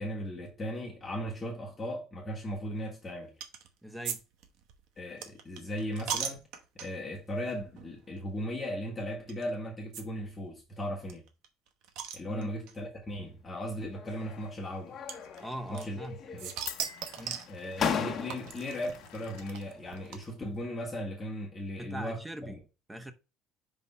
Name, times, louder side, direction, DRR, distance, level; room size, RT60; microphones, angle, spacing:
voice 1, 0.0-3.3 5.0-6.4 6.7-11.2 12.1-15.0 15.7-16.0 16.3-16.5 17.5-22.2 22.5-22.6, equal, 20° left, 1.4 m, -37 dB
sound 1, 3.4-3.7 4.1-7.1 7.8-8.2 9.3-9.4 9.9-10.0 10.3-10.4 10.6-10.7 11.1-12.7 13.6-13.7 15.1-16.1 16.4-17.6 18.3-20.6, right 8 dB, 80° right, 1.0 m, -39 dB
voice 2, 3.8-4.2 12.3-12.5 15.4-16.2 17.2-17.4 21.8-23.1, right 1 dB, 10° right, 0.8 m, -41 dB
sound 2, 13.9-14.5 14.9-15.7 15.9-16.7 17.3-17.4 17.8-18.7, left 7 dB, 35° left, 1.1 m, -35 dB
Glass, 14.0-20.3, left 11 dB, 85° left, 1.2 m, -50 dB
5.5 x 3.5 x 5.5 m
cardioid pair, 140°, 0 cm